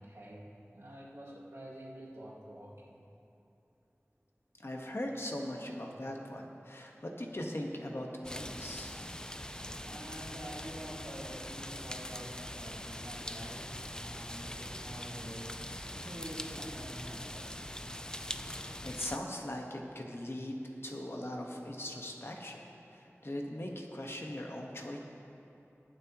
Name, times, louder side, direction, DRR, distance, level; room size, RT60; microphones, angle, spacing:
voice 1, 0.0-3.0 9.8-15.5 15.9-17.5, right 1 dB, 80° right, -6 dB, 2.3 m, -47 dB
voice 2, 4.6-8.9 18.6-22.6 22.9-25.0, left 1 dB, 55° left, 0 dB, 1.3 m, -40 dB
sound 1, 8.2-19.2, left 1 dB, 15° left, 0.4 m, -42 dB
22.5 x 7.7 x 3.0 m, 2.8 s
wide cardioid pair, 40°, 5 cm